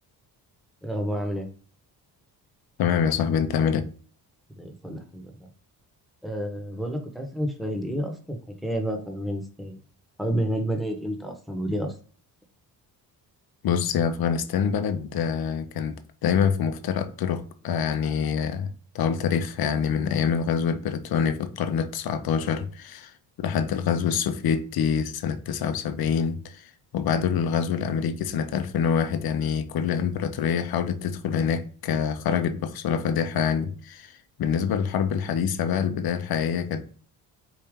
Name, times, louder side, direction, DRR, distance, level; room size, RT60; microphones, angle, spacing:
voice 1, 0.8-1.5 4.6-5.3 6.2-8.4 8.6-9.8 10.2-11.9, right 1 dB, ahead, 1.1 m, -30 dB
voice 2, 2.8-3.9 13.6-18.7 18.9-36.9, left 7 dB, 60° left, 0.8 m, -26 dB
4.8 x 2.7 x 3.6 m
cardioid pair, 85°, 41 cm